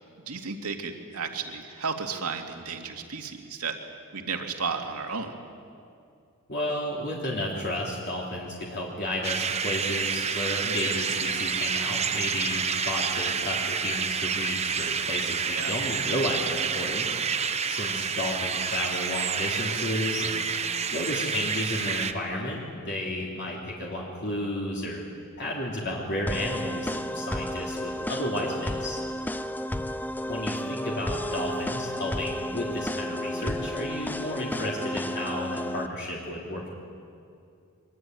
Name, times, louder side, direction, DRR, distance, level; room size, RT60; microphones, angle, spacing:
voice 1, 0.3-3.8 4.1-5.3 15.5-15.8, right 5 dB, 85° right, 3 dB, 2.5 m, -33 dB
voice 2, 6.5-17.1 17.7-20.4 20.9-25.0 25.4-29.0 30.3-36.7, left 1 dB, 50° left, -3 dB, 3.4 m, -32 dB
sound 1, 9.2-22.1, right 6 dB, 30° right, 1.0 m, -29 dB
sound 2, 26.3-35.9, left 1 dB, 10° left, 0.6 m, -32 dB
23.5 x 22.5 x 9.3 m, 2.4 s
head